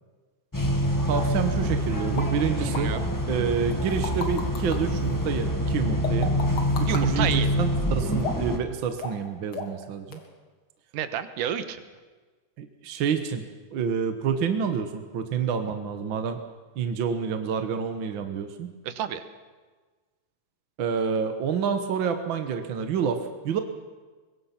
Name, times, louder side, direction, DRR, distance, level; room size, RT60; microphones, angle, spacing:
sound 1, 0.5-8.6, equal, 20° left, 0.5 m, -26 dB
voice 1, 1.1-3.0 3.3-6.3 6.8-10.2 12.6-13.4 13.7-16.4 16.7-18.7 20.8-23.6, right 7 dB, 55° right, 7 dB, 1.4 m, -28 dB
sound 2, 2.2-2.3 2.7-2.8 3.7-4.8 6.0-7.0 8.2-8.6 9.0-9.2 9.5-9.8 10.1-10.2, left 4 dB, 45° left, 2.7 m, -33 dB
voice 2, 2.6-3.1 6.9-7.5 10.9-11.8 18.8-19.2, right 9 dB, 85° right, 10 dB, 2.7 m, -30 dB
23.5 x 22.0 x 5.9 m, 1.4 s
omnidirectional pair, 3.6 m